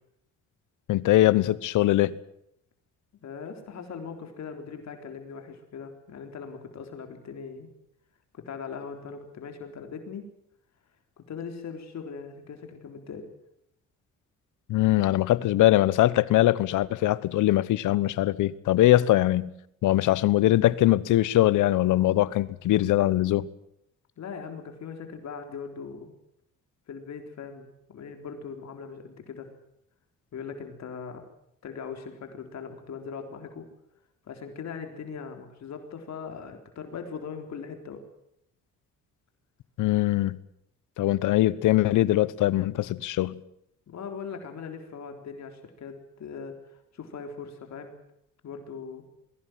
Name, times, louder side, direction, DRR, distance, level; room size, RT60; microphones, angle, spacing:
voice 1, 0.9-2.1 14.7-19.5 19.8-23.5 39.8-40.4 41.0-43.4, left 15 dB, 85° left, 1.1 m, -22 dB
voice 2, 3.2-7.7 8.3-10.2 11.2-13.3 24.2-26.1 26.9-29.5 30.3-31.2 31.6-33.7 34.2-38.0 43.9-48.0 48.4-49.0, left 6 dB, 65° left, 3.9 m, -40 dB
21.5 x 17.0 x 9.2 m
cardioid pair, 90°, 30 cm